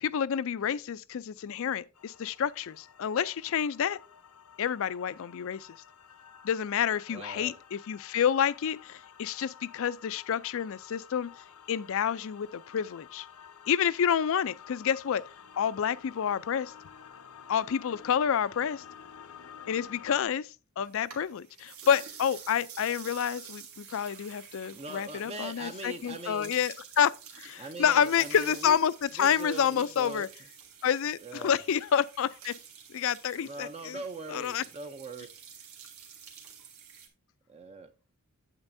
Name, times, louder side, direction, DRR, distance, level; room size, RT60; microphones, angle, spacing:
voice 1, 0.0-4.0 4.6-5.7 6.4-11.3 11.7-13.3 13.7-15.2 15.6-16.7 17.5-18.8 19.7-20.5 20.8-27.1 27.4-30.3 30.8-32.5 32.9-34.0 34.3-34.6, left 8 dB, 65° left, 0.4 m, -29 dB
sound 1, 1.9-20.2, left 8 dB, 80° left, 0.8 m, -51 dB
voice 2, 7.1-7.5 24.7-26.6 27.6-28.8 29.2-30.3 31.2-31.6 32.9-33.0 33.4-35.3 37.5-37.9, right 3 dB, 30° right, 0.5 m, -41 dB
sound 2, 20.8-37.1, right 7 dB, 75° right, 2.1 m, -49 dB
8.8 x 8.1 x 2.6 m
head